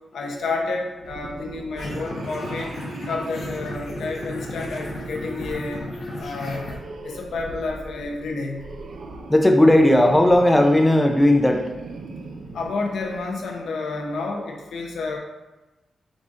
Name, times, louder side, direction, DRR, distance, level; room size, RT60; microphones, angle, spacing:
voice 1, 0.1-2.7 3.1-5.8 6.2-6.6 7.0-8.6 12.5-15.2, left 3 dB, 85° left, 1 dB, 0.7 m, -30 dB
sound 1, 1.0-13.5, right 3 dB, 65° right, 0.4 m, -39 dB
sound 2, 1.8-6.8, left 2 dB, 55° left, 1.0 m, -35 dB
voice 2, 3.6-4.8 5.0-5.5 6.0-6.3 9.3-11.6, left 1 dB, 10° left, 4 dB, 0.4 m, -18 dB
4.9 x 2.7 x 3.6 m, 1.1 s
wide cardioid pair, 130°, 0 cm